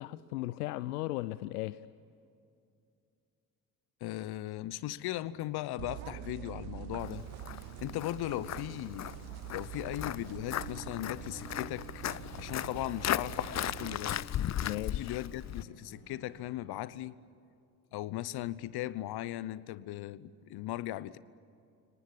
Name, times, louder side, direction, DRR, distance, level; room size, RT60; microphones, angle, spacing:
voice 1, 0.0-1.8 14.6-15.2, left 17 dB, 80° left, 0.6 m, -36 dB
voice 2, 4.0-7.2 7.8-9.1 9.5-12.0 12.4-14.2 14.7-17.2 17.9-21.2, left 15 dB, 55° left, 1.0 m, -38 dB
sound 1, 5.8-14.0, right 14 dB, 70° right, 0.9 m, -45 dB
Walk footsteps, 7.0-15.6, left 11 dB, 35° left, 0.7 m, -37 dB
sound 2, 10.0-16.5, right 2 dB, 85° right, 7.1 m, -53 dB
30.0 x 19.0 x 10.0 m
hypercardioid pair, 50°, 45 cm